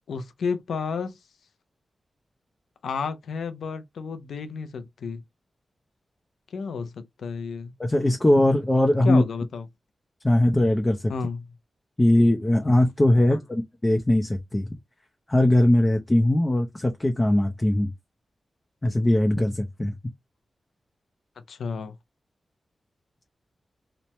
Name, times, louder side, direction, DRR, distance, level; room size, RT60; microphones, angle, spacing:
voice 1, 0.1-1.2 2.8-5.2 6.5-7.7 9.0-9.7 11.1-11.5 13.3-13.4 21.5-22.0, left 5 dB, 85° left, 0.4 m, -31 dB
voice 2, 7.8-9.2 10.2-11.1 12.0-14.7 15.3-17.9 18.8-19.9, left 1 dB, 20° left, 0.5 m, -20 dB
2.9 x 2.1 x 2.9 m
cardioid pair, 60°, 0 cm